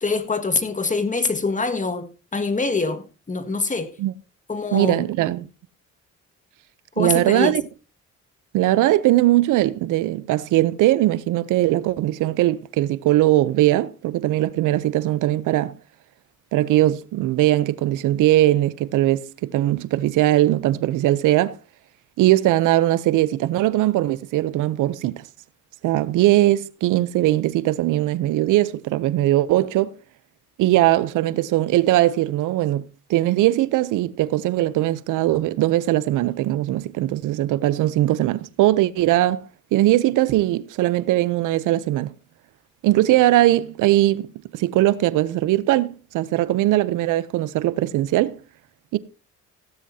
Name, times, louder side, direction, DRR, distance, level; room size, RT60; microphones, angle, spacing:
voice 1, 0.0-3.9 4.5-5.1 7.0-7.5, left 3 dB, 25° left, 1.8 m, -24 dB
voice 2, 4.7-5.5 7.0-7.6 8.5-15.8 16.5-21.6 22.2-25.2 25.8-30.0 30.6-32.8 33.1-39.4 39.7-42.1 42.8-44.3 44.5-48.3 48.9-49.0, right 15 dB, 90° right, 0.7 m, -20 dB
16.5 x 12.5 x 2.8 m
cardioid pair, 90°, 30 cm